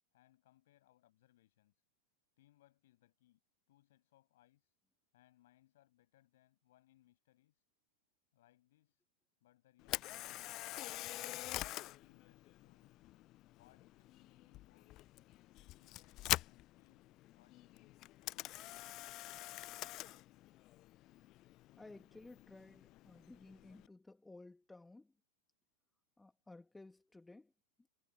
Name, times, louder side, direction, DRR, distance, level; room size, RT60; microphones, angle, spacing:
voice 1, 0.1-1.8 2.4-3.4 3.7-4.7 5.1-7.6 8.3-9.0 9.4-13.0 13.6-15.1 15.6-19.5, left 15 dB, 55° left, 7.0 m, -71 dB
Camera, 9.8-23.9, left 17 dB, 35° left, 0.7 m, -45 dB
voice 2, 21.8-25.1 26.2-27.5, left 2 dB, 5° left, 2.0 m, -56 dB
figure-of-eight pair, 90°, 0 cm